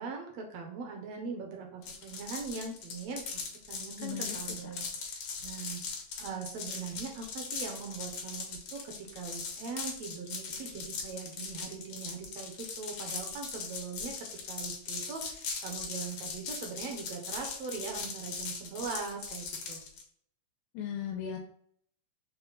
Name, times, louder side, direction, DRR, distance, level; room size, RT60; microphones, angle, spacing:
voice 1, 0.0-3.4 3.7-5.2 5.4-5.8 6.2-14.1 14.5-19.8, right 5 dB, 75° right, 1 dB, 1.5 m, -41 dB
sound 1, 1.8-20.0, left 5 dB, 65° left, 1.6 m, -39 dB
voice 2, 4.0-4.4 4.6-4.7 20.7-21.4, left 8 dB, 85° left, 3 dB, 2.2 m, -37 dB
6.0 x 2.2 x 4.0 m, 0.66 s
omnidirectional pair, 3.9 m